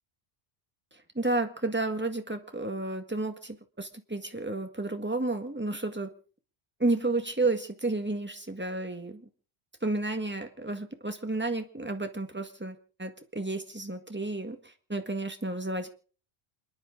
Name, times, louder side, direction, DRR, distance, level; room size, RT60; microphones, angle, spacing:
voice 1, 1.2-6.1 6.8-9.3 9.8-15.9, right 2 dB, 10° right, 6 dB, 1.8 m, -31 dB
28.0 x 11.0 x 3.8 m, 0.40 s
omnidirectional pair, 1.1 m